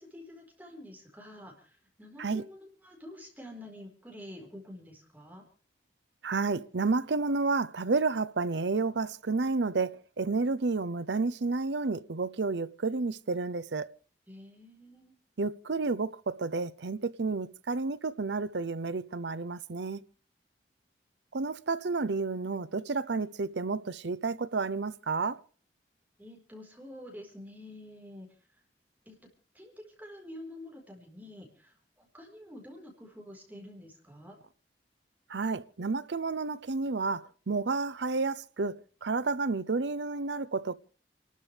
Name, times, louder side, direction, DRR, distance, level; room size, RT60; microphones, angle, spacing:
voice 1, 0.0-5.4 14.3-15.1 26.2-28.6 29.1-29.2 29.5-29.7 30.0-34.4, left 1 dB, 10° right, 4.3 m, -48 dB
voice 2, 6.2-13.9 15.4-20.0 21.3-25.4 35.3-38.8 39.0-40.7, right 3 dB, 85° right, 0.7 m, -31 dB
29.5 x 13.0 x 3.4 m
head